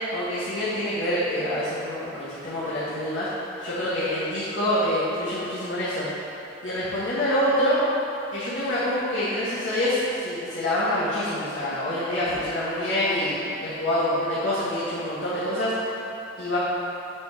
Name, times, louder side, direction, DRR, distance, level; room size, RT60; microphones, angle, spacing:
voice 1, 0.1-3.3 3.6-6.1 6.6-7.8 8.3-15.7 16.4-16.6, left 1 dB, 80° left, -11 dB, 1.4 m, -26 dB
8.4 x 3.6 x 4.8 m, 3.0 s
head